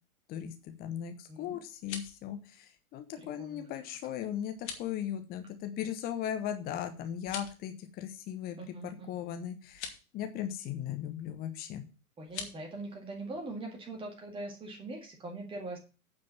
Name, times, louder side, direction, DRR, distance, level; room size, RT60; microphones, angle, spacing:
voice 1, 0.3-8.6 9.1-11.8, left 10 dB, 20° left, 7 dB, 1.1 m, -38 dB
sound 1, 1.6-2.2 4.5-4.9 7.2-7.6 9.7-10.0 12.2-12.6, left 7 dB, 50° left, 2.6 m, -42 dB
voice 2, 3.2-3.7 8.6-9.1 12.2-15.8, right 2 dB, 10° right, 1 dB, 1.9 m, -42 dB
9.4 x 5.2 x 7.5 m, 0.33 s
figure-of-eight pair, 105°, 44 cm